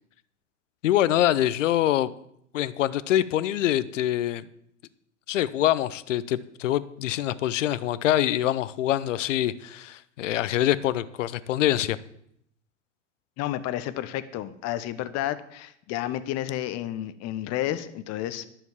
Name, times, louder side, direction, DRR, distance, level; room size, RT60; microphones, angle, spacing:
voice 1, 0.8-2.1 2.5-4.5 5.3-12.0, left 12 dB, 75° left, 17 dB, 0.8 m, -25 dB
voice 2, 13.4-18.5, left 13 dB, 45° left, 13 dB, 1.1 m, -31 dB
11.0 x 7.2 x 7.2 m, 0.72 s
hypercardioid pair, 95°, 38 cm